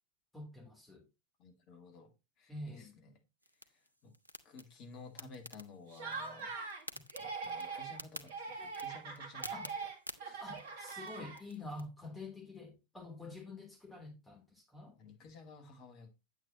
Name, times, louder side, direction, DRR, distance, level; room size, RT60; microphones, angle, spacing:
voice 1, 0.3-1.0 2.5-2.9 6.9-7.0 9.5-9.7 10.4-15.0, left 2 dB, 10° left, 3.6 m, -47 dB
voice 2, 1.4-2.1 2.4-3.1 3.6-4.1 4.4-6.5 7.2-9.6 10.2-10.6 15.0-16.1, left 3 dB, 40° left, 2.4 m, -54 dB
sound 1, 3.4-11.8, equal, 85° right, 0.8 m, -52 dB
Laughter, 5.9-6.8 7.1-8.0 8.3-11.6, right 4 dB, 55° right, 1.9 m, -42 dB
9.1 x 8.6 x 3.0 m
figure-of-eight pair, 90°, 0 cm